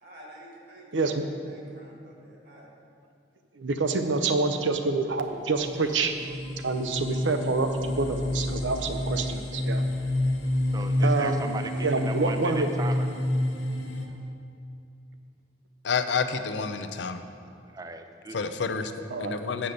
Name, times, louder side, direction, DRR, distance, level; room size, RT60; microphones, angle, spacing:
voice 1, 0.0-2.7, right 1 dB, 60° right, -2 dB, 1.8 m, -50 dB
voice 2, 0.9-1.2 3.6-6.2 6.6-9.8 11.0-11.4 11.8-12.7 19.1-19.4, right 3 dB, 90° right, 6 dB, 0.7 m, -27 dB
sound 1, 5.1-5.2 5.6-14.1, left 1 dB, 90° left, 1.0 m, -29 dB
voice 3, 10.7-13.1 17.7-18.4, right 3 dB, 20° right, 7 dB, 0.3 m, -37 dB
voice 4, 15.8-17.2 18.3-19.7, left 5 dB, 70° left, 9 dB, 0.5 m, -29 dB
7.8 x 5.6 x 6.7 m, 2.5 s
head